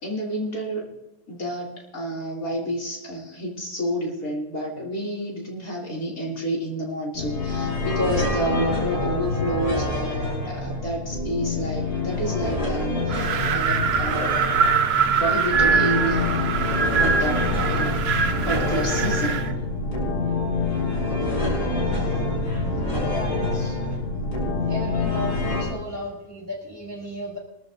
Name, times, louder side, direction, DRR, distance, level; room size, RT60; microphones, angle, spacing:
voice 1, 0.0-0.9 1.3-14.4 15.0-16.4 16.8-18.0 18.4-19.4, right 1 dB, 60° left, -2 dB, 3.3 m, -29 dB
sound 1, 7.1-25.6, left 2 dB, 85° left, 5.7 m, -26 dB
Wind, 13.1-19.5, right 6 dB, 55° right, 0.8 m, -23 dB
voice 2, 23.1-24.0 24.7-27.4, equal, 5° right, -4 dB, 5.7 m, -35 dB
23.5 x 13.5 x 2.7 m, 0.93 s
omnidirectional pair, 1.7 m